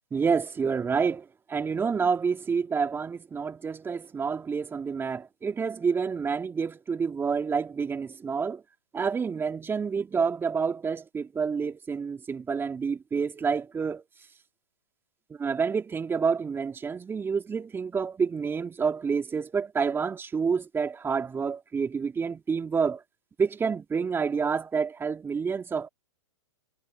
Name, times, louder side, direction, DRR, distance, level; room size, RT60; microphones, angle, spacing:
voice 1, 0.1-8.6 8.9-14.0 15.3-23.0 23.4-25.9, right 5 dB, 15° right, 2.8 m, -28 dB
hypercardioid pair, 115°, 16 cm